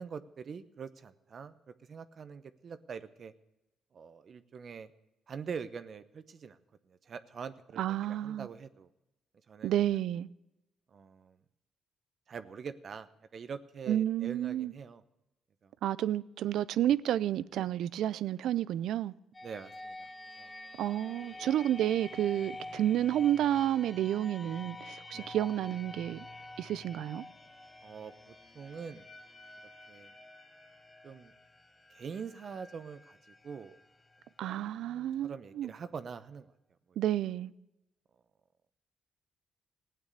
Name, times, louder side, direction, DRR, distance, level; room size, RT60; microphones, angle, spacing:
voice 1, 0.0-3.3 3.9-4.9 5.3-6.6 6.9-8.9 9.5-9.7 10.9-11.4 12.3-15.0 15.6-15.7 17.5-17.7 19.4-20.1 20.4-20.5 21.2-21.5 25.1-25.3 27.8-29.1 29.9-30.1 31.0-31.3 31.9-33.2 33.4-33.8 34.4-36.5, right 6 dB, 50° right, 0.9 m, -44 dB
voice 2, 7.8-8.5 9.6-10.3 13.9-14.7 15.8-19.1 20.8-26.3 26.6-27.2 34.4-35.7 37.0-37.5, right 11 dB, 80° right, 0.5 m, -30 dB
sound 1, 19.3-35.0, left 2 dB, 20° left, 1.3 m, -49 dB
16.0 x 9.0 x 8.4 m
cardioid pair, 90°, 0 cm